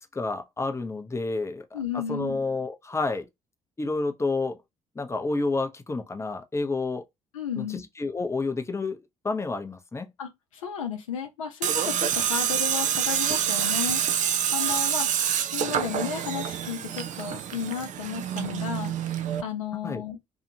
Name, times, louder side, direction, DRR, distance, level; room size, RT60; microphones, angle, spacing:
voice 1, 0.1-1.8 2.1-3.3 3.8-4.6 5.0-7.0 7.6-9.0 9.2-10.1 19.8-20.0, left 3 dB, 15° left, 0.7 m, -29 dB
voice 2, 1.7-2.4 7.3-7.8 10.2-14.0 14.5-15.1 15.5-18.9 19.4-20.2, left 7 dB, 85° left, 0.6 m, -33 dB
Tools, 11.6-19.4, right 9 dB, 50° right, 0.4 m, -27 dB
2.7 x 2.4 x 2.7 m
hypercardioid pair, 50°, 17 cm